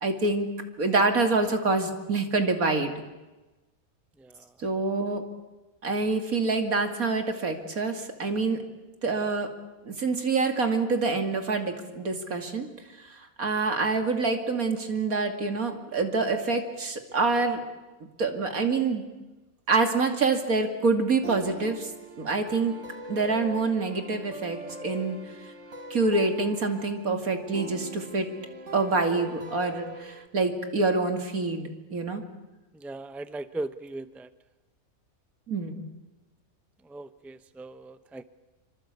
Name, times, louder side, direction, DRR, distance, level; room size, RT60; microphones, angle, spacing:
voice 1, 0.0-0.5 0.8-2.9 4.6-5.2 5.8-8.6 9.0-9.5 9.8-12.7 13.0-17.6 18.2-19.0 19.7-21.9 22.2-22.8 23.1-25.2 25.9-28.3 28.7-32.2 35.5-35.9, right 3 dB, 80° right, 5 dB, 3.0 m, -26 dB
sound 1, 19.8-30.3, right 1 dB, 55° right, 2.1 m, -42 dB
voice 2, 32.7-34.3 36.8-38.2, right 2 dB, ahead, 12 dB, 0.7 m, -38 dB
25.5 x 25.5 x 8.3 m, 1.1 s
omnidirectional pair, 1.5 m